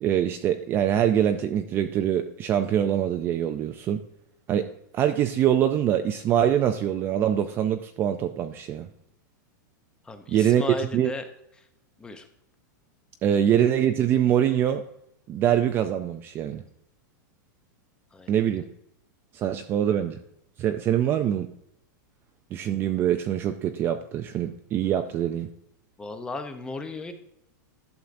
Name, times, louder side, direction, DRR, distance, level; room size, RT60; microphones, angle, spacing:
voice 1, 0.0-4.0 4.5-8.9 10.3-10.6 10.9-11.1 13.2-14.8 15.3-16.6 18.3-18.6 19.3-20.2 20.6-21.5 22.5-25.5, right 10 dB, 20° right, 7 dB, 0.3 m, -24 dB
voice 2, 10.0-11.3 12.0-12.3 18.1-18.4 26.0-27.1, left 2 dB, 10° left, 8 dB, 0.6 m, -35 dB
11.5 x 7.1 x 2.6 m, 0.78 s
supercardioid pair, 160°, 10 cm